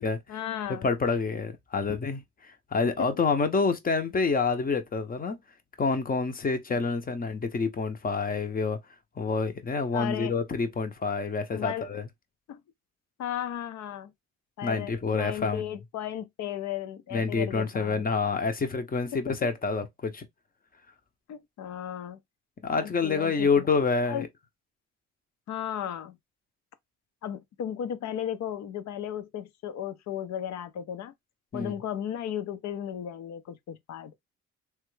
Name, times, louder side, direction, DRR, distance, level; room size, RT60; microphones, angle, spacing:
voice 1, 0.3-0.9 3.0-3.1 6.7-6.8 9.9-10.3 11.5-12.0 12.5-12.6 13.2-14.1 14.6-18.0 19.1-19.2 21.3-22.2 22.7-23.7 24.1-24.3 25.5-26.2 27.2-31.1 31.5-34.1, left 10 dB, 65° left, 0.6 m, -35 dB
voice 2, 0.8-5.4 5.8-8.8 9.2-12.0 14.6-15.7 17.1-20.3 22.6-24.3 31.5-31.7, left 4 dB, 30° left, 0.7 m, -27 dB
3.1 x 2.3 x 3.1 m
cardioid pair, 90°, 30 cm